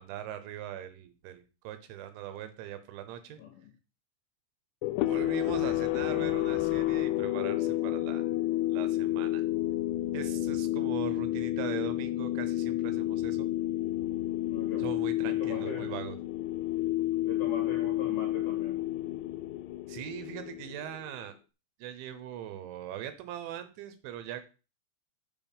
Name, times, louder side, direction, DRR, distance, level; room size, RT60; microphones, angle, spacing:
voice 1, 0.0-3.4 5.0-8.4 8.7-9.4 10.1-13.5 14.8-16.2 19.9-21.3 21.8-24.5, right 10 dB, 80° right, 3.2 m, -41 dB
voice 2, 3.4-3.7 14.5-16.0 17.2-18.9, left 5 dB, 65° left, 2.0 m, -41 dB
sound 1, 4.8-21.1, left 15 dB, 85° left, 2.4 m, -30 dB
7.3 x 5.2 x 5.4 m
omnidirectional pair, 5.5 m